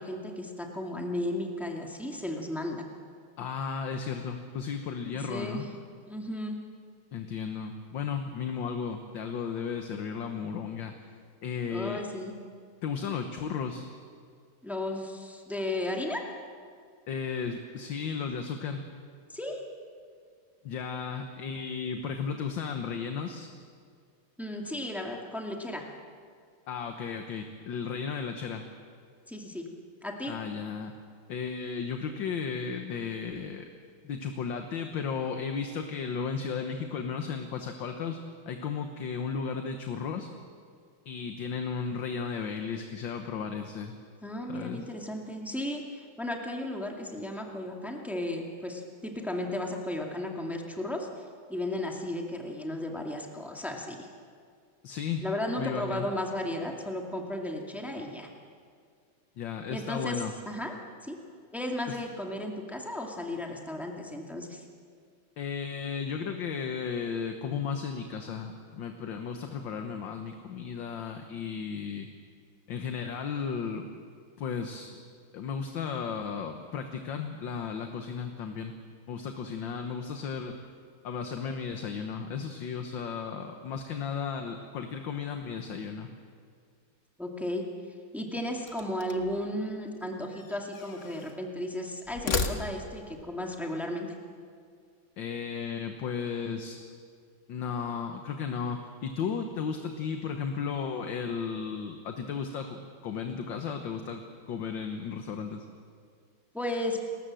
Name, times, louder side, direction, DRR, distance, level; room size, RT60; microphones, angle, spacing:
voice 1, 0.0-2.8 5.3-5.7 6.1-6.6 11.7-12.3 14.6-16.2 19.3-19.6 24.4-25.9 29.3-29.6 30.0-30.3 44.2-51.1 51.5-54.1 55.2-58.3 59.7-60.7 61.0-61.2 61.5-64.6 87.2-87.6 88.1-94.1 106.5-107.0, left 1 dB, ahead, 1 dB, 2.0 m, -34 dB
voice 2, 3.4-5.6 7.1-10.9 11.4-12.0 12.8-13.9 17.1-18.8 20.6-23.5 26.7-28.6 30.3-30.9 31.3-33.7 34.0-38.2 38.5-40.3 41.0-44.0 44.5-44.9 54.8-55.2 55.6-56.1 59.4-60.3 61.9-62.0 65.4-72.1 72.7-73.9 74.4-75.0 75.3-78.7 79.1-80.6 81.0-86.1 95.2-96.8 97.5-105.6, left 6 dB, 65° left, 5 dB, 1.8 m, -34 dB
sound 1, 88.7-89.4 90.3-91.4 92.0-93.1, left 4 dB, 40° left, 1.3 m, -34 dB
30.0 x 13.5 x 7.6 m, 2.1 s
omnidirectional pair, 2.3 m